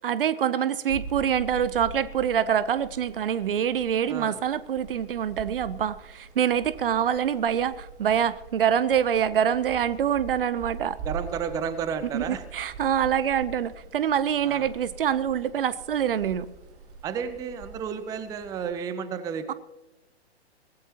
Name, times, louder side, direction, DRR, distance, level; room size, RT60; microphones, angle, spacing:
voice 1, 0.0-11.0 12.1-16.5 19.5-19.6, right 9 dB, 55° right, 0.7 m, -25 dB
sound 1, 0.9-18.7, right 5 dB, 35° right, 2.1 m, -43 dB
voice 2, 4.1-4.4 11.0-12.4 14.4-14.7 17.0-19.5, right 7 dB, 10° right, 0.6 m, -32 dB
23.0 x 17.5 x 2.9 m
figure-of-eight pair, 115°, 33 cm